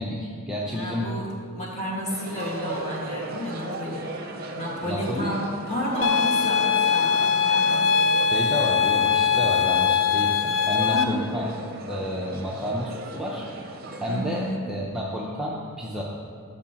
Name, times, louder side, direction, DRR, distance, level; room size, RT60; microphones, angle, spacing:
voice 1, 0.0-1.1 4.8-5.4 8.3-11.5 11.9-13.5 14.0-16.0, equal, 5° right, -5 dB, 0.6 m, -30 dB
voice 2, 0.7-4.1 4.6-8.0 10.9-11.3 14.1-14.5, equal, 30° left, -4 dB, 1.7 m, -31 dB
sound 1, 2.1-14.6, right 2 dB, 45° right, 0.6 m, -37 dB
sound 2, 6.0-11.0, left 6 dB, 70° left, 0.4 m, -21 dB
12.5 x 6.2 x 2.9 m, 2.1 s
head